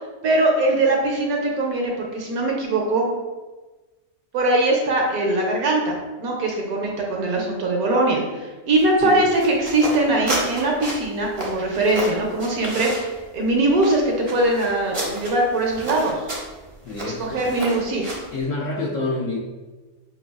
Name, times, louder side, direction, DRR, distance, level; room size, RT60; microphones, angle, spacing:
voice 1, 0.2-3.1 4.3-16.2 17.0-18.0, right 2 dB, 70° right, 0 dB, 1.1 m, -21 dB
sound 1, 8.7-18.4, right 1 dB, 30° right, 0.5 m, -32 dB
voice 2, 9.0-9.3 16.8-17.6 18.3-19.4, left 2 dB, 70° left, -3 dB, 0.8 m, -28 dB
6.0 x 2.3 x 2.3 m, 1.2 s
omnidirectional pair, 1.8 m